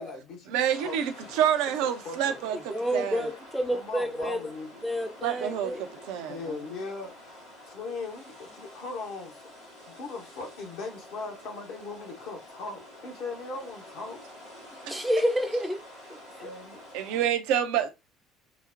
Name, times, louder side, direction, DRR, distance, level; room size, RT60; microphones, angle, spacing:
voice 1, 0.0-1.4 2.0-2.4 3.7-4.8 6.2-9.4 9.9-14.2 16.2-16.8, left 3 dB, 60° left, 0.8 m, -39 dB
voice 2, 0.5-3.3 5.2-6.6 14.8-15.0 16.9-17.9, right 9 dB, 65° right, 0.4 m, -28 dB
sound 1, 0.7-17.2, left 1 dB, 85° left, 1.4 m, -48 dB
voice 3, 2.7-4.5 4.8-5.8 14.9-15.8 16.1-16.5, equal, 5° right, 0.5 m, -29 dB
3.9 x 2.0 x 2.4 m
figure-of-eight pair, 55°, 0 cm